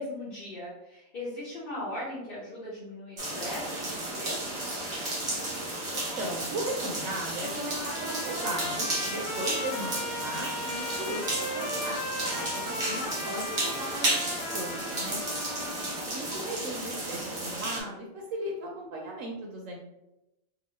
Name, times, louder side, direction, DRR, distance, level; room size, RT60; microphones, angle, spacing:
voice 1, 0.0-4.8 12.7-13.1 15.8-16.0 16.3-16.4, left 1 dB, 45° left, -10 dB, 1.0 m, -39 dB
sound 1, 3.2-17.8, right 1 dB, 30° right, 0.7 m, -33 dB
voice 2, 5.9-12.0 12.2-15.2 16.1-19.8, right 1 dB, 75° right, 0 dB, 0.9 m, -37 dB
Trumpet, 7.4-16.2, left 2 dB, 75° left, 1.0 m, -37 dB
2.9 x 2.3 x 3.0 m, 0.91 s
omnidirectional pair, 1.4 m